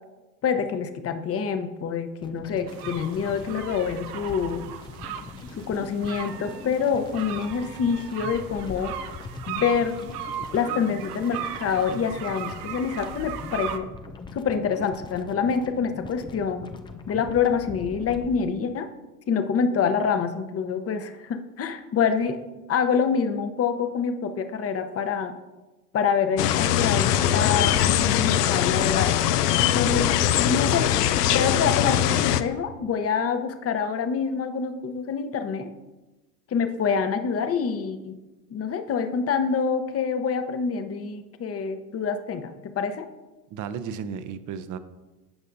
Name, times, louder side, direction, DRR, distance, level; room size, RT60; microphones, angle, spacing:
voice 1, 0.4-4.7 5.5-8.9 9.5-10.1 10.5-13.9 14.3-16.7 17.1-18.9 19.3-22.4 22.7-25.3 25.9-29.1 29.7-30.9 31.1-35.7 36.5-38.2 38.5-43.1, left 6 dB, 30° left, 8 dB, 0.9 m, -26 dB
sound 1, 2.2-18.3, left 4 dB, 10° left, 0.3 m, -41 dB
sound 2, 2.7-13.8, right 9 dB, 75° right, 0.8 m, -37 dB
sound 3, 26.4-32.4, left 11 dB, 85° left, 0.6 m, -22 dB
voice 2, 43.5-44.8, right 7 dB, 40° right, 12 dB, 0.7 m, -34 dB
15.0 x 5.4 x 2.7 m, 1.1 s
hypercardioid pair, 95°, 46 cm